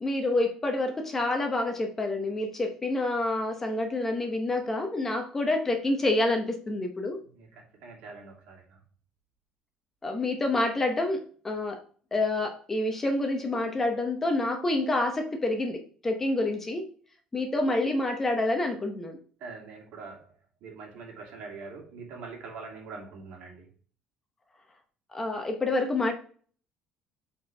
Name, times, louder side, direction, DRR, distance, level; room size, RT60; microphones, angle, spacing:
voice 1, 0.0-7.2 10.0-11.8 12.1-16.9 17.3-19.2 25.1-26.1, left 2 dB, 15° left, 4 dB, 0.9 m, -28 dB
voice 2, 7.3-8.8 19.4-20.3 20.6-23.7, right 4 dB, 60° right, -1 dB, 2.7 m, -43 dB
8.4 x 4.4 x 3.4 m, 0.44 s
cardioid pair, 170°, 2 cm